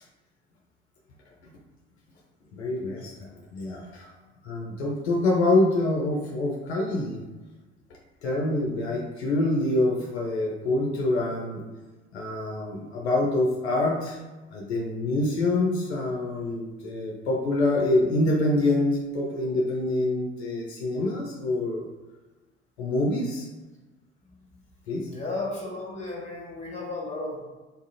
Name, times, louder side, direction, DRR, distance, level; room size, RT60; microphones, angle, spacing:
voice 1, 2.5-3.1 3.5-4.1 4.4-7.2 8.2-11.6 12.1-14.2 14.5-21.8 22.8-23.5 24.9-25.1, left 2 dB, 75° left, -2 dB, 0.6 m, -26 dB
voice 2, 25.0-27.4, left 2 dB, 20° left, -4 dB, 1.4 m, -34 dB
4.0 x 2.4 x 2.7 m, 1.2 s
figure-of-eight pair, 60°, 33 cm